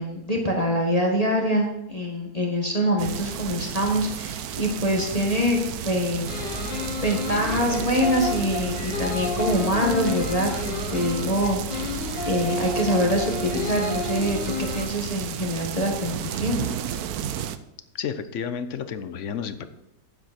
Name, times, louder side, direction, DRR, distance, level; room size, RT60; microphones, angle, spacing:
voice 1, 0.0-6.4 7.0-12.0 12.2-16.6, equal, 25° left, -1 dB, 1.5 m, -25 dB
sound 1, 3.0-17.6, right 10 dB, 70° right, 1.1 m, -33 dB
sound 2, 6.3-14.8, left 3 dB, 85° left, 2.1 m, -30 dB
voice 2, 17.9-19.8, left 7 dB, 60° left, 11 dB, 0.9 m, -31 dB
9.3 x 7.6 x 4.3 m, 0.90 s
omnidirectional pair, 1.8 m